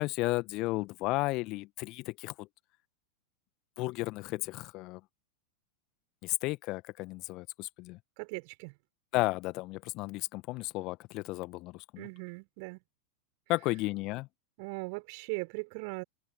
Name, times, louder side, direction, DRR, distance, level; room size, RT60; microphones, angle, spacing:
voice 1, 0.0-2.5 3.8-5.0 6.2-8.0 9.1-12.0 13.5-14.3, left 21 dB, 40° left, 1.6 m, -33 dB
voice 2, 8.2-8.8 12.0-12.8 14.6-16.0, right 33 dB, 45° right, 4.9 m, -39 dB
open air
figure-of-eight pair, 90°, 0 cm